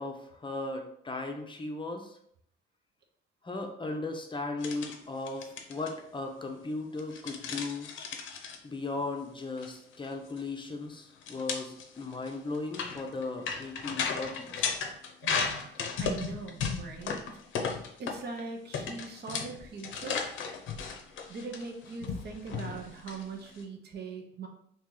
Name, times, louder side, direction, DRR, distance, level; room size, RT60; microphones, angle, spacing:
voice 1, 0.0-2.1 3.4-7.9 8.6-14.7, left 3 dB, 25° left, 3 dB, 0.6 m, -37 dB
sound 1, 4.6-5.0 5.3-5.9 7.0-8.6 9.4-9.7 9.9-10.1 10.4-10.5 11.2-18.4 18.7-23.6, left 5 dB, 75° left, 0.6 m, -35 dB
voice 2, 15.2-15.7 16.0-17.2 17.6-17.7 18.0-20.2 21.3-24.5, right 4 dB, 55° right, 3 dB, 0.7 m, -41 dB
2.9 x 2.8 x 3.7 m, 0.70 s
cardioid pair, 90°, 20 cm